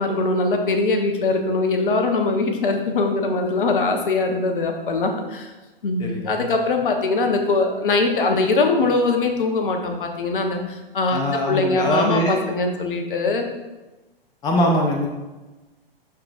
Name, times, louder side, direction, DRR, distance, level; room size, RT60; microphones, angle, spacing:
voice 1, 0.0-5.5 5.8-13.5, left 3 dB, 60° left, 4 dB, 1.0 m, -22 dB
voice 2, 6.0-6.5 11.1-12.4 14.4-15.1, equal, 15° left, 1 dB, 0.6 m, -22 dB
11.5 x 3.8 x 2.5 m, 1.1 s
figure-of-eight pair, 110°, 30 cm